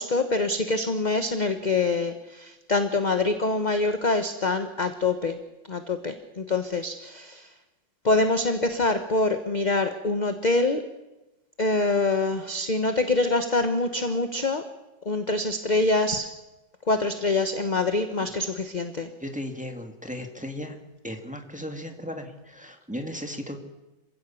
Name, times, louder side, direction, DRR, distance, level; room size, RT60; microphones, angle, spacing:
voice 1, 0.0-5.4 5.7-7.5 8.0-10.8 11.6-14.7 15.0-16.3 16.9-19.1, left 3 dB, 30° left, 7 dB, 1.0 m, -25 dB
voice 2, 19.2-20.8 21.0-23.6, left 1 dB, 5° right, 4 dB, 1.9 m, -36 dB
27.0 x 16.0 x 7.1 m, 1.1 s
omnidirectional pair, 1.9 m